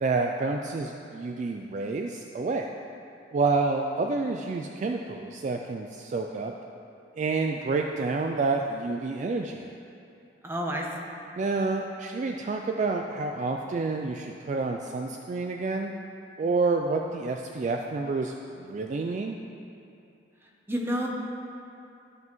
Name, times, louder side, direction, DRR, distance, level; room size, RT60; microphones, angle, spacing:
voice 1, 0.0-2.7 3.3-6.5 7.2-9.6 11.4-15.9 16.4-19.4, right 3 dB, 40° right, 3 dB, 0.3 m, -29 dB
voice 2, 10.4-10.9 20.7-21.1, equal, 15° right, 0 dB, 0.8 m, -29 dB
12.5 x 5.4 x 3.1 m, 2.6 s
head